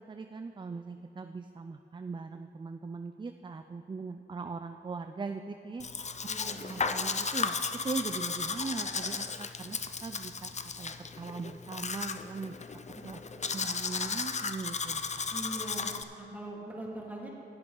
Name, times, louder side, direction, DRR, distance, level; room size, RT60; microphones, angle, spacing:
voice 1, 0.1-5.9 6.6-7.6 7.8-10.5 10.8-12.5 13.0-15.0, right 4 dB, 25° right, 8 dB, 0.4 m, -40 dB
Domestic sounds home sounds, 5.8-16.0, left 5 dB, 40° left, 0.5 m, -35 dB
voice 2, 6.3-6.8 12.9-13.0 13.3-13.7 15.3-17.3, right 1 dB, 10° right, -3 dB, 2.5 m, -42 dB
15.5 x 7.5 x 3.9 m, 3.0 s
cardioid pair, 55°, 19 cm